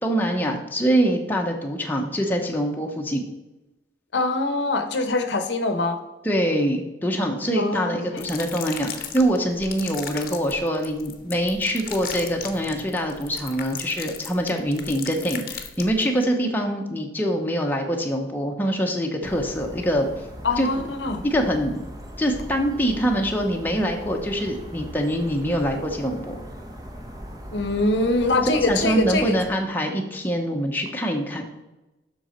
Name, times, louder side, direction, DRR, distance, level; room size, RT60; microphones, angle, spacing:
voice 1, 0.0-3.3 6.2-20.1 20.6-20.7 21.2-21.8 22.2-26.4 28.4-31.5, equal, 10° left, 1 dB, 0.9 m, -24 dB
voice 2, 4.1-6.0 7.6-8.2 20.4-21.2 27.5-29.4, left 2 dB, 75° left, 8 dB, 0.8 m, -23 dB
sound 1, 8.2-16.2, left 7 dB, 50° left, 0.8 m, -37 dB
sound 2, 19.2-29.5, equal, 20° right, 0.8 m, -39 dB
7.7 x 6.2 x 4.4 m, 1.0 s
head